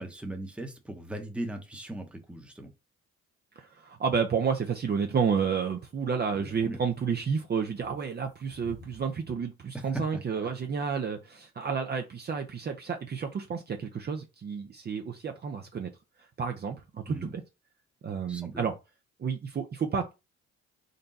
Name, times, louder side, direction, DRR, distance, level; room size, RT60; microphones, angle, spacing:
voice 1, 0.0-2.7 6.3-6.8 9.7-10.0 10.4-10.5 17.1-17.3 18.3-18.7, right 1 dB, 5° right, 0.9 m, -38 dB
voice 2, 3.6-15.9 16.4-17.4 18.0-18.8 19.2-20.1, right 6 dB, 35° right, 0.5 m, -31 dB
sound 1, 4.3-9.2, left 4 dB, 80° left, 0.9 m, -54 dB
3.9 x 2.2 x 3.9 m
cardioid pair, 90°, 30 cm